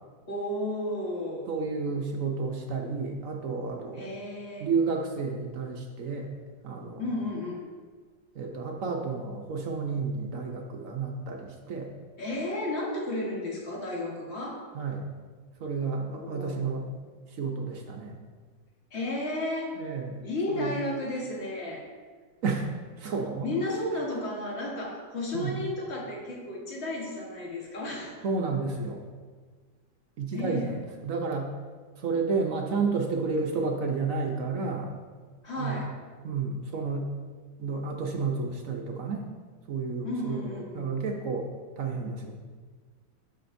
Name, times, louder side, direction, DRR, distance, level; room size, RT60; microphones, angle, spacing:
voice 1, 0.3-1.5 3.9-4.7 7.0-7.6 12.2-14.6 16.2-16.7 18.9-19.8 20.2-21.8 23.4-28.2 30.3-30.7 35.4-35.9 40.0-40.9, left 1 dB, 35° left, -2 dB, 1.5 m, -33 dB
voice 2, 1.5-4.0 4.6-6.3 6.6-7.0 8.4-11.9 14.7-15.1 15.6-16.9 17.4-18.1 19.8-20.2 20.5-20.8 22.4-22.6 23.0-23.5 25.3-25.6 28.2-29.0 30.2-30.8 31.0-31.5 32.0-34.9 35.6-35.8 36.2-37.1 37.6-39.2 39.7-40.4 40.7-41.5 41.8-42.3, right 4 dB, 65° right, 2 dB, 0.8 m, -31 dB
12.5 x 5.2 x 2.6 m, 1.5 s
omnidirectional pair, 2.1 m